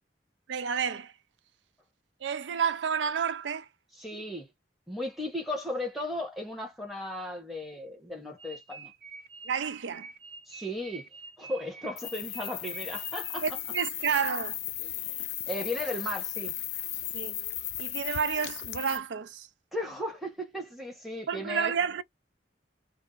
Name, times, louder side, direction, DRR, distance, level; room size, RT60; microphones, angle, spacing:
voice 1, 0.5-1.1 2.2-3.7 9.4-10.1 13.4-14.6 17.1-17.4 17.8-19.5 21.3-22.0, right 6 dB, 80° right, 0.4 m, -30 dB
voice 2, 4.0-4.5 4.9-8.9 10.5-11.1 11.4-13.4 15.0-16.6 19.7-21.7, left 1 dB, ahead, 0.9 m, -36 dB
sound 1, 8.4-13.7, right 5 dB, 55° right, 1.4 m, -47 dB
sound 2, 12.0-19.0, left 13 dB, 65° left, 0.5 m, -36 dB
2.6 x 2.1 x 3.8 m
head